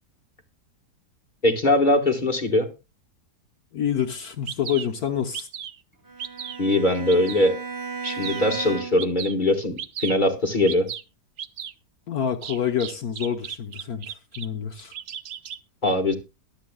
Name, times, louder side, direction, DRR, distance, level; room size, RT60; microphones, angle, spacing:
voice 1, 1.4-2.7 6.6-7.5 8.0-10.9 15.8-16.1, left 1 dB, 30° left, 1.5 m, -21 dB
voice 2, 3.7-5.5 12.1-14.1 14.4-14.9, left 8 dB, 65° left, 1.5 m, -27 dB
Bird vocalization bird call bird song, 4.0-4.1 4.5-4.9 5.3-5.8 6.2-6.6 7.1-7.5 8.0-8.5 9.0-9.4 9.8-10.2 10.7-11.0 11.4-11.7 12.4-14.5 14.8-15.6, right 8 dB, 55° right, 0.9 m, -35 dB
Bowed string instrument, 6.1-9.2, right 5 dB, 15° right, 0.7 m, -35 dB
23.0 x 8.1 x 2.3 m
omnidirectional pair, 1.8 m